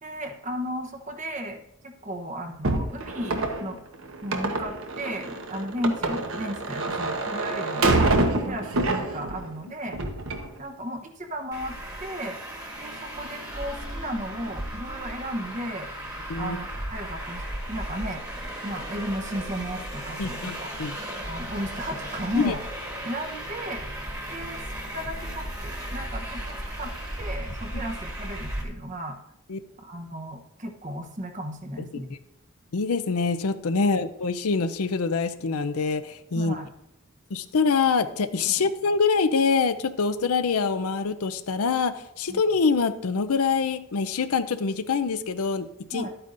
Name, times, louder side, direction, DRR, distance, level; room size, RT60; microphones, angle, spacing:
voice 1, 0.0-3.8 4.2-10.0 10.6-12.4 12.8-15.9 16.4-18.2 18.6-20.7 21.2-22.6 23.0-23.8 24.3-24.6 24.9-29.2 29.8-32.1 36.3-36.7 38.4-38.6 42.3-42.4 45.9-46.1, equal, 35° right, 5 dB, 0.9 m, -34 dB
sound 1, 2.6-9.5 9.9-10.5, right 2 dB, 70° right, 1.1 m, -26 dB
Traffic noise roadway noise, 11.5-28.6, right 1 dB, 15° right, 1.5 m, -35 dB
voice 2, 20.2-21.0 22.4-22.5 29.5-29.6 32.7-36.6 37.3-46.0, left 5 dB, 85° left, 12 dB, 0.6 m, -25 dB
12.0 x 8.9 x 2.6 m, 0.81 s
head